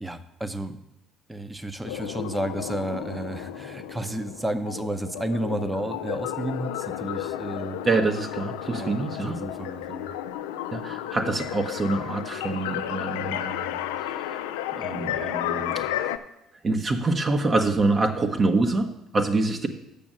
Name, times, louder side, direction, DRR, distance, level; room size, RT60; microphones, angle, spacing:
voice 1, 0.0-0.8 1.3-7.8 8.8-10.1, right 1 dB, 10° right, 10 dB, 0.8 m, -32 dB
sound 1, 1.8-16.2, left 11 dB, 85° left, 0.4 m, -32 dB
voice 2, 7.8-9.4 10.7-13.7 14.2-14.3 14.7-15.8 16.6-19.7, right 3 dB, 35° right, 5 dB, 1.0 m, -25 dB
6.9 x 6.2 x 7.5 m, 0.85 s
hypercardioid pair, 70°, 0 cm